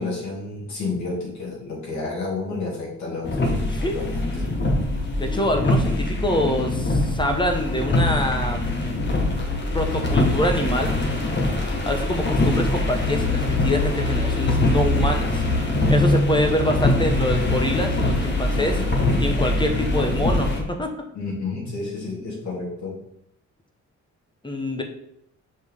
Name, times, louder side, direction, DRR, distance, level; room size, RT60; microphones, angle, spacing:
voice 1, 0.0-3.7 3.9-4.5 18.5-19.0 21.1-23.0, left 3 dB, 70° left, -4 dB, 2.5 m, -31 dB
sound 1, 3.2-20.6, left 2 dB, 35° left, 1.3 m, -23 dB
voice 2, 5.2-8.6 9.7-11.0 11.9-15.4 15.9-18.8 19.2-20.9 24.4-24.8, left 1 dB, 15° left, 4 dB, 0.9 m, -25 dB
6.3 x 5.2 x 3.6 m, 0.75 s
cardioid pair, 130°, 29 cm